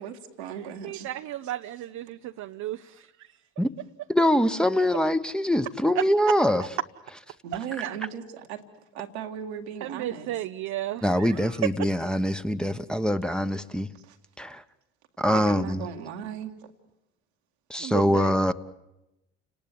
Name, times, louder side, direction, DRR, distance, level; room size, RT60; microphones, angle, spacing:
voice 1, 0.0-1.1 7.4-8.6 8.9-10.3 13.9-14.2 15.3-16.6, right 8 dB, 85° right, 1.9 m, -37 dB
voice 2, 0.8-3.4 7.8-8.0 9.8-12.2 17.8-18.5, right 14 dB, 60° right, 0.8 m, -34 dB
voice 3, 4.1-6.6 11.0-13.9 14.4-14.6 15.2-15.9 17.7-18.5, equal, 5° left, 1.2 m, -24 dB
29.5 x 19.0 x 7.8 m
hypercardioid pair, 55°, 32 cm